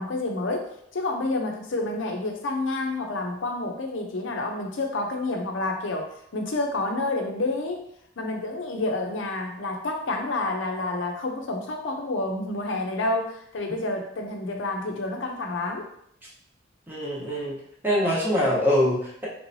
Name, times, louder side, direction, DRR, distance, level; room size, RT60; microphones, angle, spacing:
voice 1, 0.0-7.8 8.2-15.8, left 2 dB, 75° left, 2 dB, 0.6 m, -29 dB
voice 2, 16.9-17.6 17.8-19.3, equal, 10° right, -6 dB, 0.9 m, -23 dB
3.3 x 3.1 x 2.6 m, 0.72 s
head